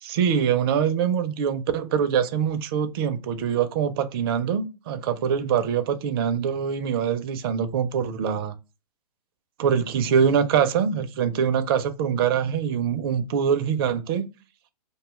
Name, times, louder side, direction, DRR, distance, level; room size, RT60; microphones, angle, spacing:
voice 1, 0.0-8.5 9.6-14.3, right 7 dB, 35° right, 0.4 m, -24 dB
2.6 x 2.2 x 3.1 m
hypercardioid pair, 135°, 20 cm